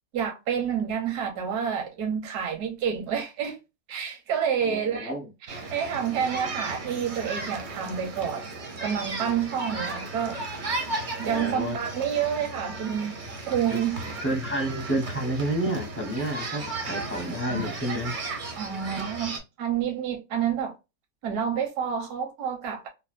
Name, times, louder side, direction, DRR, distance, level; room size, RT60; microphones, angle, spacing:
voice 1, 0.1-3.6 3.9-5.2 5.5-8.5 8.8-10.4 11.2-13.1 13.5-14.0 18.5-20.7 21.2-22.9, right 8 dB, 70° right, 1.3 m, -28 dB
voice 2, 4.6-5.3 11.2-11.8 13.7-13.8 14.2-18.1, right 1 dB, 15° left, 0.4 m, -30 dB
sound 1, 5.5-19.4, right 2 dB, 50° right, 0.6 m, -35 dB
3.3 x 2.3 x 2.4 m
omnidirectional pair, 1.7 m